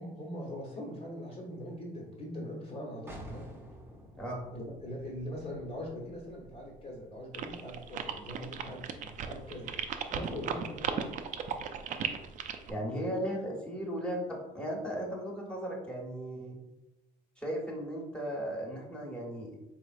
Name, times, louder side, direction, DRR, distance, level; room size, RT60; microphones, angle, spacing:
voice 1, 0.0-3.5 4.5-9.8 10.1-11.1 12.9-13.2, equal, 40° left, -3 dB, 1.0 m, -41 dB
sound 1, 3.1-8.6, equal, 15° right, 0.8 m, -51 dB
sound 2, 7.3-12.7, right 8 dB, 50° right, 0.4 m, -36 dB
voice 2, 12.7-16.6 17.4-19.6, equal, 5° left, -3 dB, 1.1 m, -36 dB
4.4 x 3.2 x 2.5 m, 0.99 s
cardioid pair, 110°, 17 cm